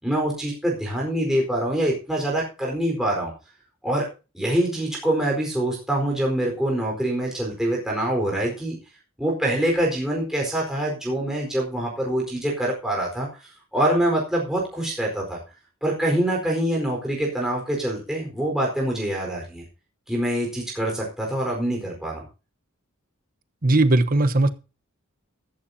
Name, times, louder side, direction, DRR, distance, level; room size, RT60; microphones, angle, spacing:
voice 1, 0.0-3.3 3.8-4.1 4.3-8.8 9.2-13.3 13.7-15.4 15.8-19.6 20.1-22.2, right 1 dB, ahead, -2 dB, 4.5 m, -25 dB
voice 2, 23.6-24.5, right 2 dB, 45° right, 10 dB, 1.1 m, -18 dB
14.0 x 14.0 x 2.8 m, 0.32 s
head